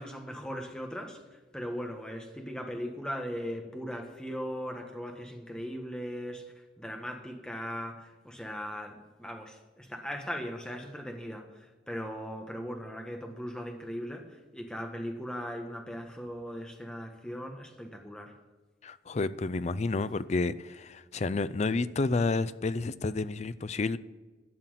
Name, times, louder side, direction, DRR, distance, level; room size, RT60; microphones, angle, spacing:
voice 1, 0.0-18.3, equal, 5° left, 1.5 m, -39 dB
voice 2, 18.8-24.0, left 3 dB, 40° left, 0.4 m, -30 dB
13.0 x 5.9 x 9.1 m
head